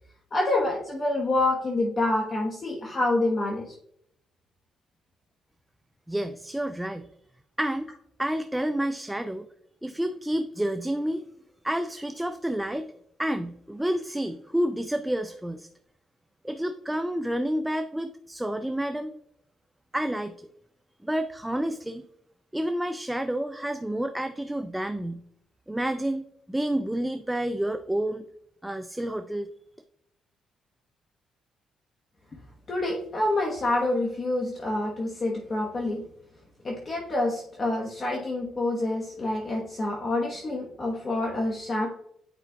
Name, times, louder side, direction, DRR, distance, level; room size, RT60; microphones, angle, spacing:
voice 1, 0.3-3.7 32.7-36.0 36.6-41.9, left 2 dB, 40° left, -1 dB, 1.1 m, -27 dB
voice 2, 6.1-7.1 7.6-7.9 8.2-9.5 9.8-11.2 11.6-12.9 13.2-15.7 16.4-19.1 19.9-20.3 21.0-22.0 22.5-25.2 25.7-28.2 28.6-29.5, right 1 dB, 5° right, 8 dB, 0.4 m, -29 dB
8.9 x 5.0 x 2.3 m, 0.72 s
cardioid pair, 90°, 0 cm